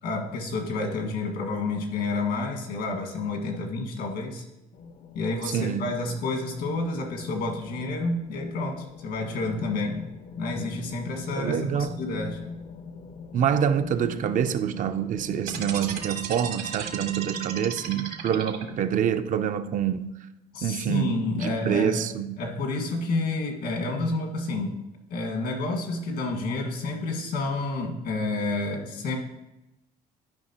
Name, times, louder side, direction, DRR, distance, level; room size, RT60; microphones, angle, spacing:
voice 1, 0.0-4.4 5.1-10.0 10.4-12.4 20.5-22.1 22.4-24.7 25.1-29.2, left 3 dB, 75° left, 1.7 m, -29 dB
sound 1, 4.7-16.0, left 4 dB, 50° left, 0.6 m, -41 dB
voice 2, 5.5-5.9 11.4-11.9 13.3-20.1 20.6-22.4, right 9 dB, 50° right, 0.4 m, -26 dB
sound 2, 15.4-19.0, right 7 dB, 65° right, 1.2 m, -35 dB
11.5 x 5.2 x 2.9 m
cardioid pair, 110°, 17 cm